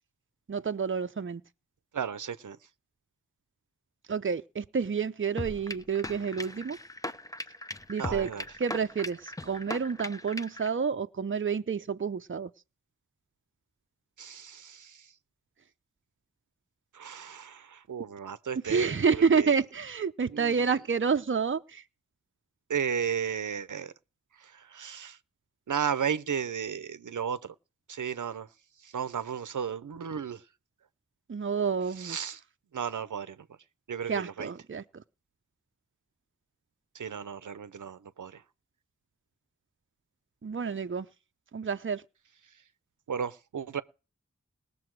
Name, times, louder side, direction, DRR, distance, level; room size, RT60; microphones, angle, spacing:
voice 1, 0.5-1.4 4.1-6.8 7.9-8.3 8.6-12.5 18.6-21.8 31.3-32.2 34.1-35.0 40.4-41.1 41.5-42.0, right 5 dB, 45° right, 0.6 m, -29 dB
voice 2, 1.9-2.6 8.0-8.4 14.2-15.0 16.9-18.9 19.4-19.5 20.3-20.5 22.7-23.9 24.4-25.2 25.7-27.5 27.9-28.5 28.8-30.4 32.0-32.4 32.7-33.4 33.9-34.5 36.9-38.4 43.1-43.8, right 7 dB, 90° right, 0.7 m, -34 dB
sound 1, 5.4-10.7, left 1 dB, 10° left, 0.7 m, -39 dB
20.0 x 6.9 x 4.6 m
wide cardioid pair, 65°, 30 cm